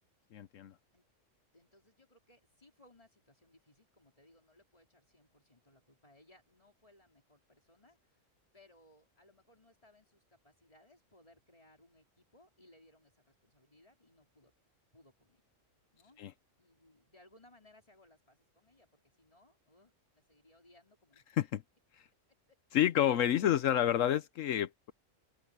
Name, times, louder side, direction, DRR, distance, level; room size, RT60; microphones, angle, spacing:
voice 1, 0.3-0.7 16.2-16.3 21.3-21.6 21.9-22.1 22.7-24.9, left 11 dB, 80° left, 1.1 m, -29 dB
voice 2, 1.5-8.2 8.5-14.5 14.9-15.4 15.9-16.2 16.6-21.2 22.5-22.6, left 1 dB, 25° left, 4.2 m, -64 dB
open air
omnidirectional pair, 1.3 m